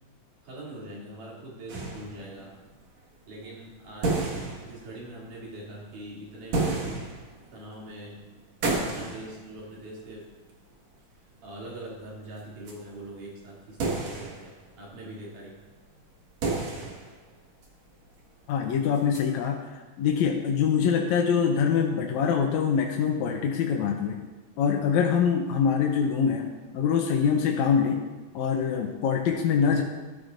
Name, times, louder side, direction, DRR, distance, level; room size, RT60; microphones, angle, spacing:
voice 1, 0.4-2.5 3.3-4.3 4.6-7.0 7.5-8.2 8.8-10.2 11.4-14.5 14.8-15.6, right 1 dB, 75° right, -6 dB, 4.4 m, -42 dB
sound 1, 1.7-2.8 3.6-3.7 4.0-5.3 6.3-8.0 8.6-10.2 10.5-10.6 12.2-12.3 12.7-12.8 13.8-14.9 16.0-16.1 16.3-17.3 17.6-17.7 18.1-18.2 18.9-19.2, right 3 dB, 60° right, 2.7 m, -31 dB
voice 2, 18.5-24.2 24.6-26.5 26.7-28.0 28.3-29.8, left 7 dB, 75° left, 1 dB, 1.9 m, -24 dB
13.0 x 12.5 x 2.6 m, 1.2 s
omnidirectional pair, 3.7 m